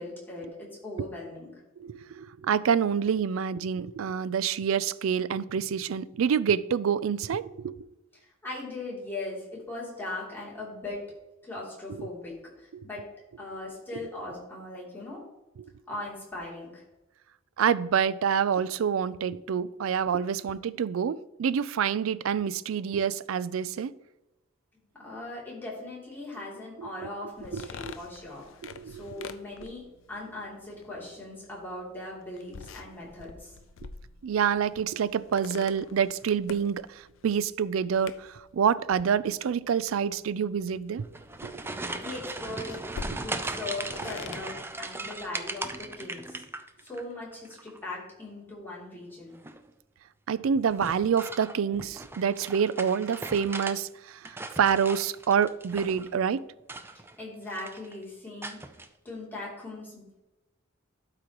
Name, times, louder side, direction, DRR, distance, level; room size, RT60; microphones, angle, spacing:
voice 1, 0.0-1.5 8.1-11.0 11.4-13.0 13.4-15.2 15.9-16.8 24.9-29.8 30.1-33.6 42.0-42.8 43.2-46.4 46.8-49.4 57.2-58.6 59.0-60.2, left 2 dB, 10° left, -6 dB, 3.0 m, -39 dB
voice 2, 1.8-7.8 11.9-12.1 12.7-12.9 17.6-23.9 26.8-26.9 27.5-27.7 28.6-29.3 33.8-33.9 34.2-41.1 41.4-41.7 50.3-56.4, right 7 dB, 85° right, 17 dB, 0.4 m, -27 dB
sound 1, 27.3-45.9, left 4 dB, 70° left, 0.5 m, -47 dB
sound 2, 41.0-47.0 47.3-47.9 49.3-49.7 50.7-53.8 54.1-56.1 56.6-57.2 57.5-57.9 58.4-58.9, right 2 dB, 10° right, 0.5 m, -38 dB
12.0 x 5.0 x 3.0 m, 1.0 s
head